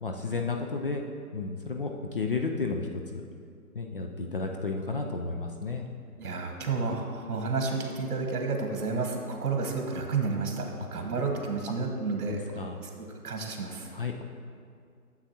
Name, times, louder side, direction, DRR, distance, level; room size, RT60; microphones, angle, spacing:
voice 1, 0.0-1.0 1.3-2.9 3.1-3.2 3.7-5.8 12.3-12.7 13.9-14.2, left 4 dB, 40° left, 2 dB, 0.4 m, -32 dB
voice 2, 6.2-12.4 12.8-13.9, right 4 dB, 70° right, 3 dB, 1.3 m, -31 dB
9.9 x 7.2 x 2.8 m, 2.2 s
hypercardioid pair, 150°, 45 cm